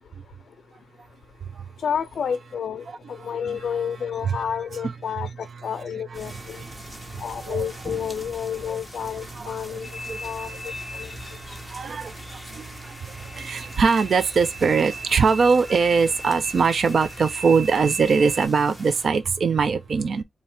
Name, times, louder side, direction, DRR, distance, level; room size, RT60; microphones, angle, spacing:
voice 1, 1.8-6.6 7.2-11.1 11.5-11.6, left 8 dB, 70° left, 0.4 m, -30 dB
voice 2, 2.9-3.3 3.5-3.6 4.3-4.4 6.2-7.9 9.0-20.2, right 5 dB, 55° right, 0.5 m, -23 dB
sound 1, 6.1-19.1, equal, 10° right, 1.0 m, -43 dB
sound 2, 9.8-18.5, right 2 dB, 10° left, 0.6 m, -37 dB
4.4 x 2.9 x 3.3 m
wide cardioid pair, 140°, 0 cm